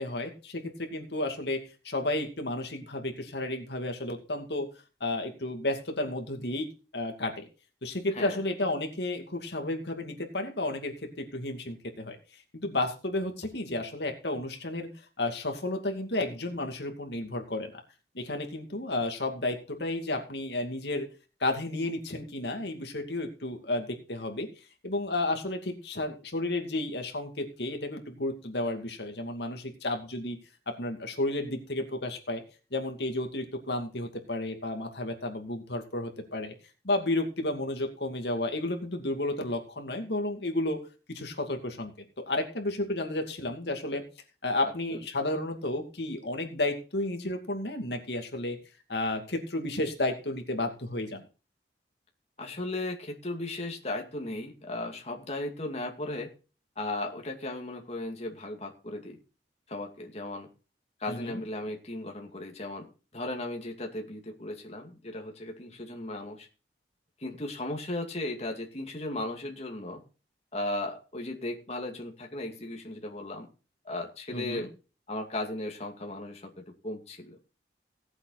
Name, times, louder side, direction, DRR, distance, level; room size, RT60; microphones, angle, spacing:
voice 1, 0.0-4.7 5.0-6.7 6.9-7.5 7.8-12.2 12.5-14.9 15.2-17.8 18.1-21.1 21.4-24.5 24.8-30.4 30.7-32.4 32.7-36.5 36.8-40.8 41.1-41.9 42.2-44.0 44.4-48.6 48.9-51.2 61.1-61.4 74.3-74.7, left 2 dB, 70° left, 4 dB, 2.4 m, -32 dB
voice 2, 52.4-56.3 56.8-59.2 59.7-60.5 61.0-66.5 67.2-70.0 70.5-73.5 73.8-74.7 75.1-77.5, left 2 dB, 40° left, 1 dB, 2.4 m, -36 dB
17.5 x 7.9 x 4.1 m, 0.34 s
head